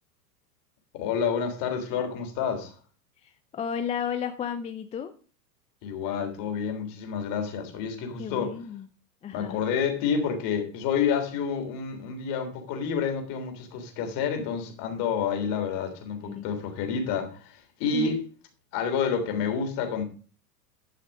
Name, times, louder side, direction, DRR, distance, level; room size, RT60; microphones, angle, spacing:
voice 1, 0.9-2.7 5.8-8.6 9.3-18.2 18.7-20.0, left 6 dB, 45° left, 3.4 m, -29 dB
voice 2, 3.2-5.1 8.2-8.9 9.2-9.6 16.2-16.4 17.9-18.2, left 7 dB, 15° left, 0.5 m, -33 dB
12.0 x 5.8 x 5.2 m
hypercardioid pair, 100°, 48 cm